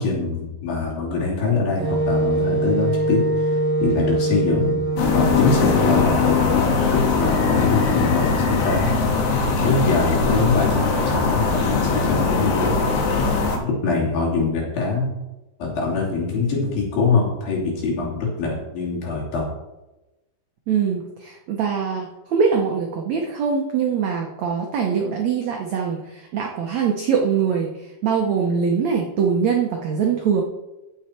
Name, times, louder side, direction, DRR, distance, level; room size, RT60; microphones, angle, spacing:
voice 1, 0.0-4.8 5.1-8.9 9.2-12.8 13.6-15.1 15.6-19.5, left 4 dB, 65° left, -3 dB, 4.4 m, -24 dB
Wind instrument woodwind instrument, 1.8-6.5, right 2 dB, 40° right, 1.8 m, -23 dB
sound 1, 5.0-13.6, left 4 dB, 85° left, 3.4 m, -20 dB
voice 2, 20.7-30.4, right 6 dB, 85° right, 1 dB, 1.5 m, -23 dB
14.5 x 6.4 x 4.4 m, 1.0 s
omnidirectional pair, 4.6 m